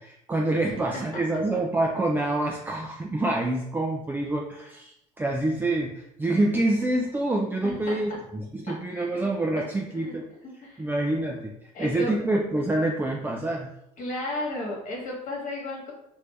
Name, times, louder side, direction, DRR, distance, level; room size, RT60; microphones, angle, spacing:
voice 1, 0.0-10.2 10.8-13.7, right 2 dB, 10° right, 0 dB, 0.4 m, -27 dB
voice 2, 7.6-8.0 8.9-9.2 9.9-10.2 10.6-10.9 11.7-12.1 14.0-15.9, left 1 dB, 45° left, -2 dB, 1.4 m, -33 dB
3.1 x 2.6 x 3.2 m, 0.80 s
hypercardioid pair, 60°, 18 cm